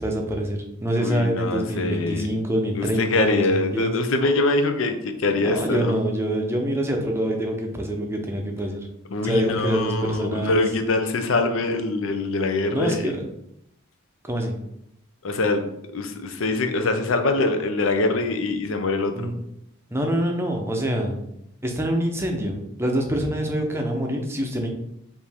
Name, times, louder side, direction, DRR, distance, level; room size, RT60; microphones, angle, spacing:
voice 1, 0.0-3.9 5.4-8.8 9.2-10.7 12.7-13.2 14.2-14.5 19.2-19.3 19.9-21.2 21.6-24.7, right 1 dB, 10° right, 2 dB, 0.6 m, -25 dB
voice 2, 1.0-2.3 2.8-5.9 9.1-13.1 15.2-15.7 15.9-19.3, left 2 dB, 70° left, 7 dB, 0.6 m, -24 dB
5.1 x 2.6 x 3.5 m, 0.79 s
head